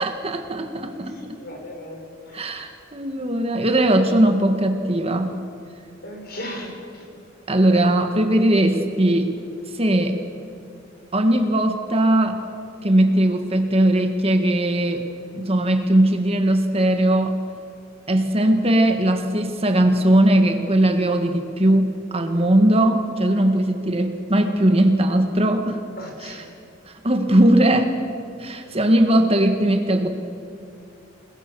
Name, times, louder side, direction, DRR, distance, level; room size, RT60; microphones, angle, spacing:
voice 1, 0.0-1.1 2.3-5.4 7.5-9.3 9.7-10.2 11.1-12.4 12.8-15.0 15.3-17.4 18.1-25.8 26.2-26.4 26.9-28.0 28.4-30.1, right 1 dB, 30° right, 6 dB, 1.7 m, -19 dB
voice 2, 1.2-2.0 6.0-6.8 26.0-26.4, left 1 dB, 55° left, 2 dB, 5.2 m, -35 dB
29.0 x 20.5 x 6.9 m, 2.5 s
head